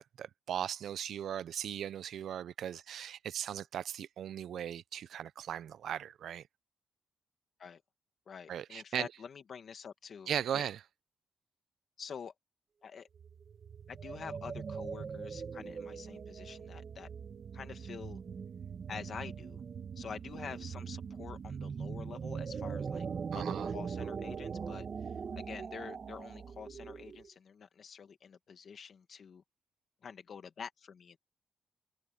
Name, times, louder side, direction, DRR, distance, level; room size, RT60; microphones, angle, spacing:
voice 1, 0.0-6.5 8.5-9.1 10.3-10.8 23.3-23.7, right 9 dB, 80° right, 0.5 m, -38 dB
voice 2, 8.3-10.6 12.0-12.3 12.8-13.1 13.9-17.1 17.5-18.2 18.9-19.6 19.9-23.1 23.3-29.4 30.0-31.2, left 6 dB, 60° left, 1.7 m, -47 dB
sound 1, 13.1-27.3, right 6 dB, 50° right, 1.5 m, -41 dB
cardioid pair, 105°, 0 cm